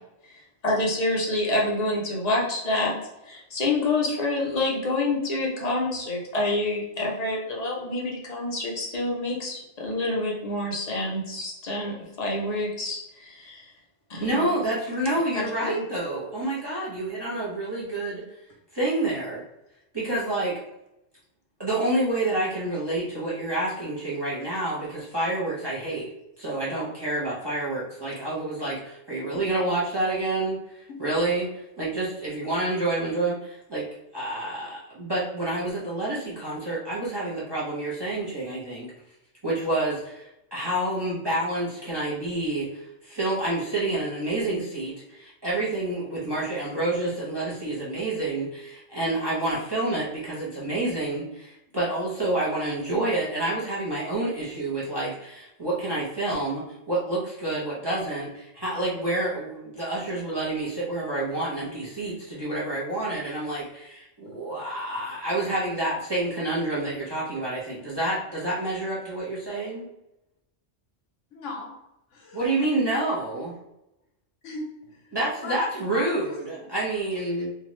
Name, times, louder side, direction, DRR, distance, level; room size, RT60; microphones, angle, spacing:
voice 1, 0.3-2.9 3.2-13.7 14.1-14.5 15.3-15.8, left 2 dB, 40° left, -2 dB, 0.7 m, -27 dB
voice 2, 14.2-18.2 18.7-19.4 19.9-20.6 21.6-26.1 26.4-33.9 34.1-38.9 39.4-69.9 72.3-73.5 75.1-77.5, right 2 dB, 25° right, -8 dB, 0.7 m, -28 dB
voice 3, 71.3-71.8 72.1-72.7 74.4-75.2 75.4-75.7 75.9-76.7, left 3 dB, 85° left, 0 dB, 1.1 m, -38 dB
2.8 x 2.4 x 3.0 m, 0.88 s
omnidirectional pair, 1.2 m